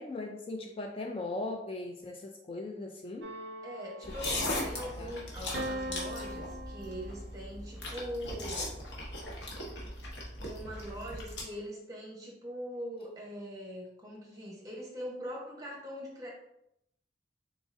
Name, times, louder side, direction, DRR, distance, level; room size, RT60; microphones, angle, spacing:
voice 1, 0.0-3.3 4.1-4.2 4.6-4.7 5.0-5.1, left 2 dB, 30° left, 2 dB, 0.3 m, -39 dB
sound 1, 3.2-4.9 5.5-7.5, right 1 dB, 70° right, 0.4 m, -41 dB
voice 2, 3.6-8.7 10.4-16.3, equal, 20° right, -3 dB, 1.0 m, -42 dB
sound 2, 4.0-11.4, left 1 dB, 85° left, 1.1 m, -38 dB
4.0 x 3.7 x 2.6 m, 0.80 s
head